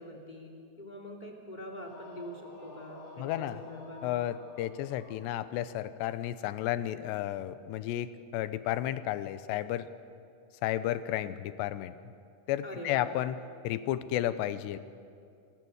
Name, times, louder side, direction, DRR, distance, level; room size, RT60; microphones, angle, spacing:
voice 1, 0.0-4.1 12.6-13.1, equal, 15° left, 0 dB, 2.4 m, -44 dB
sound 1, 1.7-5.7, left 2 dB, 65° left, 5.4 m, -50 dB
voice 2, 3.2-3.6 4.0-9.9 10.6-11.9 12.5-13.4 13.6-14.8, left 13 dB, 85° left, 13 dB, 3.0 m, -32 dB
27.5 x 20.5 x 8.0 m, 2.4 s
omnidirectional pair, 4.8 m